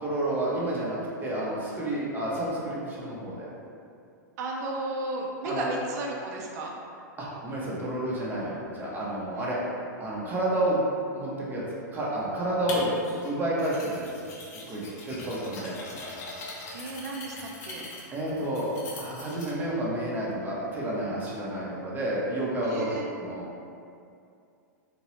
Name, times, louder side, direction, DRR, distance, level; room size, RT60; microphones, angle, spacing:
voice 1, 0.0-3.5 5.4-5.7 7.2-9.6 10.0-10.8 11.1-11.6 11.9-12.9 13.2-14.1 14.7-15.7 18.1-18.7 19.0-22.9 23.2-23.5, right 1 dB, 20° right, -6 dB, 0.8 m, -30 dB
voice 2, 4.4-6.7 9.3-9.5 16.7-17.9 22.6-23.1, right 2 dB, 60° right, -1 dB, 0.5 m, -34 dB
sound 1, 12.7-13.3 13.6-19.5, left 2 dB, 60° left, 0.7 m, -41 dB
2.9 x 2.8 x 3.0 m, 2.5 s
hypercardioid pair, 105°, 10 cm